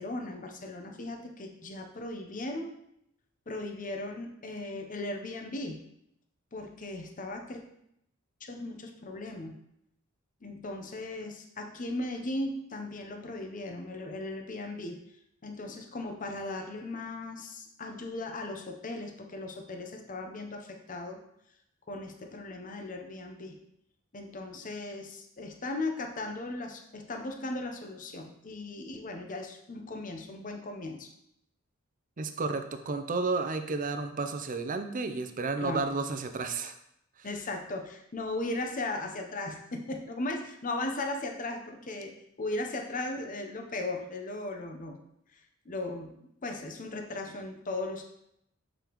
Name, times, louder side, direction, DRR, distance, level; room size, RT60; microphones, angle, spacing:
voice 1, 0.0-2.7 3.5-5.8 6.5-7.6 8.4-9.5 10.4-15.0 15.4-21.2 21.9-23.6 24.1-31.1 35.6-35.9 37.2-42.1 42.4-45.0 45.3-45.4 45.6-48.0, left 2 dB, 40° left, 4 dB, 0.8 m, -37 dB
voice 2, 32.2-36.8, right 3 dB, 40° right, 8 dB, 0.6 m, -32 dB
6.9 x 5.1 x 3.0 m, 0.76 s
head